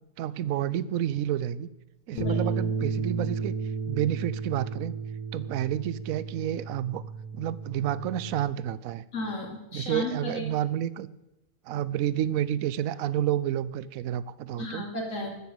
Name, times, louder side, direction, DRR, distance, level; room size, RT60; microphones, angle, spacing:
voice 1, 0.2-1.7 2.1-3.5 3.9-4.9 5.3-7.0 7.3-9.0 9.7-11.1 11.7-14.9, right 11 dB, 70° right, 17 dB, 1.0 m, -29 dB
Bass guitar, 2.2-8.4, right 4 dB, 30° left, 1.9 m, -33 dB
voice 2, 9.1-10.4 14.6-15.3, left 2 dB, 60° left, -1 dB, 3.0 m, -34 dB
13.5 x 7.0 x 8.0 m, 0.95 s
omnidirectional pair, 1.6 m